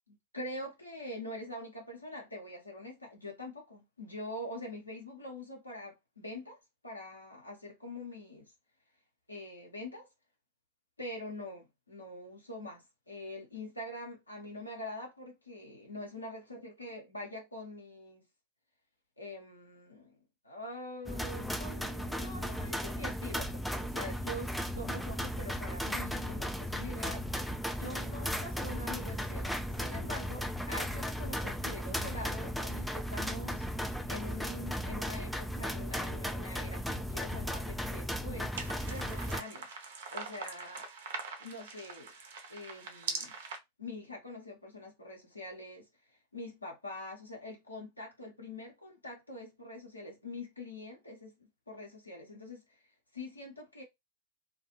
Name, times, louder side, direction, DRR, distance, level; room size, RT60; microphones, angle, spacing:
voice 1, 0.1-6.6 6.8-8.5 9.3-10.1 11.0-18.2 19.2-20.2 20.4-38.6 38.8-39.7 40.1-40.9 41.4-42.1 42.5-43.3 43.8-52.8 53.1-53.8, left 1 dB, 85° left, 0.9 m, -44 dB
sound 1, 21.1-39.4, equal, ahead, 0.3 m, -36 dB
sound 2, 38.6-43.6, right 5 dB, 55° right, 0.6 m, -42 dB
2.3 x 2.2 x 2.9 m
figure-of-eight pair, 90°, 0 cm